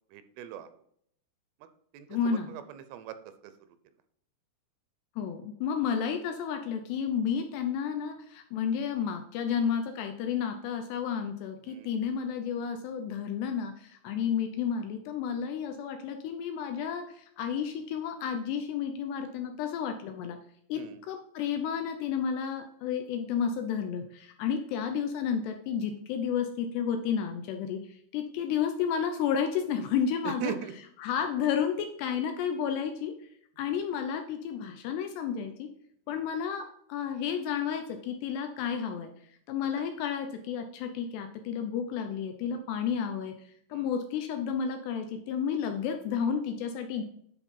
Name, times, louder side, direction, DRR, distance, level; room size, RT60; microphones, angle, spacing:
voice 1, 0.1-0.7 1.6-1.7 1.9-3.5 11.6-11.9 14.2-14.3 20.7-21.0 30.2-30.7 33.6-33.8 36.1-36.3 39.8-39.9 43.7-43.9, right 9 dB, 90° right, 11 dB, 3.3 m, -40 dB
voice 2, 2.1-2.5 5.2-20.4 20.7-30.5 31.0-33.1 33.6-35.7 36.1-39.1 39.5-43.3 43.7-47.0, left 7 dB, 80° left, 6 dB, 2.5 m, -31 dB
10.0 x 4.4 x 5.4 m, 0.68 s
omnidirectional pair, 5.5 m